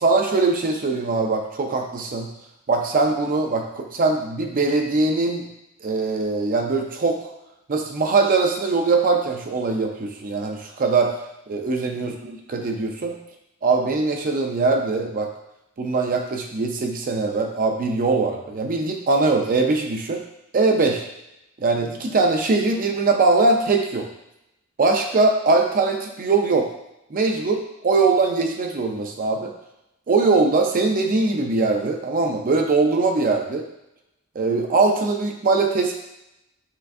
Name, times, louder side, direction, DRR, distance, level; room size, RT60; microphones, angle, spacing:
voice 1, 0.0-2.3 2.7-5.4 5.8-7.2 7.7-11.1 11.5-13.2 13.6-15.3 15.8-20.2 20.5-21.0 21.6-24.1 24.8-26.7 27.1-29.5 30.1-33.7 34.4-35.9, right 3 dB, 40° right, 3 dB, 0.4 m, -21 dB
5.6 x 3.3 x 2.6 m, 0.86 s
head